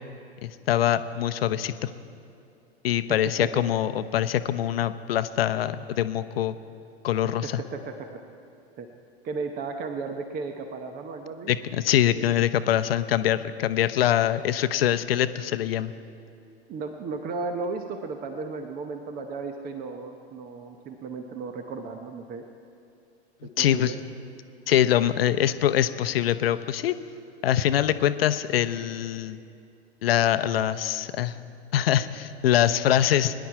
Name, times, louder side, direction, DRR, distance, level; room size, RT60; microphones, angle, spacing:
voice 1, 0.4-1.9 2.8-6.6 7.0-7.6 11.5-15.9 23.4-23.9 24.7-27.0 27.4-29.4 30.0-31.4 31.7-33.3, left 11 dB, 60° left, 12 dB, 0.8 m, -24 dB
voice 2, 2.9-3.6 7.2-8.2 8.7-8.9 9.2-11.6 12.0-12.3 16.4-22.4 23.4-24.0, right 4 dB, 25° right, 6 dB, 1.0 m, -35 dB
22.5 x 10.5 x 4.7 m, 2.5 s
figure-of-eight pair, 95°, 33 cm